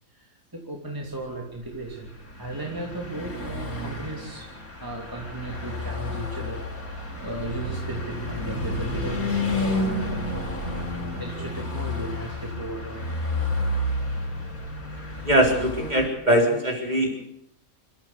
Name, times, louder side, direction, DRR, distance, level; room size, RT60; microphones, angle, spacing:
voice 1, 0.1-4.5 4.8-10.8 11.2-13.1, right 1 dB, 15° right, -1 dB, 3.1 m, -36 dB
Car passing by / Truck, 1.7-16.1, left 1 dB, 85° left, 4.9 m, -31 dB
voice 2, 15.2-17.2, right 1 dB, 30° right, 1 dB, 4.4 m, -21 dB
28.0 x 14.0 x 8.2 m, 0.76 s
omnidirectional pair, 1.5 m